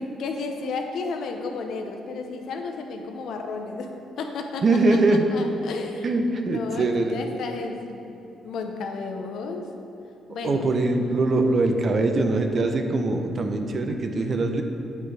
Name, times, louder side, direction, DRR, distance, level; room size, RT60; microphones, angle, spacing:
voice 1, 0.2-4.7 5.1-8.2 8.4-9.7 10.3-10.7, left 4 dB, 75° left, 4 dB, 0.7 m, -33 dB
voice 2, 4.6-5.3 6.0-7.2 10.4-14.6, right 2 dB, 45° right, 5 dB, 0.7 m, -22 dB
7.9 x 4.5 x 4.8 m, 3.0 s
cardioid pair, 90°, 0 cm